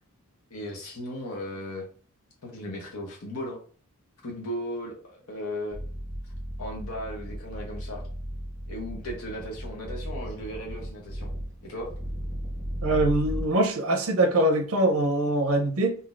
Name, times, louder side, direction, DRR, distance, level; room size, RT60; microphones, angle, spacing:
voice 1, 0.5-1.9 2.4-3.6 4.2-5.8 6.6-8.0 8.7-11.3 11.6-11.9, equal, 75° left, 0.9 m, -36 dB
sound 1, 5.7-13.5, equal, 10° left, 1.1 m, -35 dB
voice 2, 12.8-16.0, right 1 dB, 75° right, 0.6 m, -23 dB
3.9 x 2.7 x 2.4 m
head